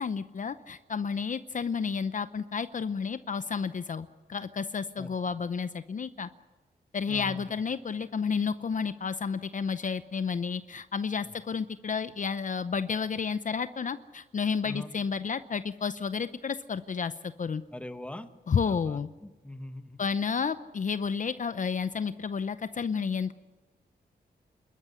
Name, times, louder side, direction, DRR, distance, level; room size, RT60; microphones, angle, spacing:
voice 1, 0.0-6.3 6.9-17.6 18.5-19.1 20.0-23.3, left 6 dB, 45° left, 12 dB, 0.7 m, -31 dB
voice 2, 7.1-7.6 11.2-11.3 14.6-14.9 17.7-18.3 18.7-20.1, left 1 dB, 5° left, 9 dB, 1.4 m, -42 dB
28.0 x 13.5 x 9.8 m, 1.2 s
cardioid pair, 90°, 18 cm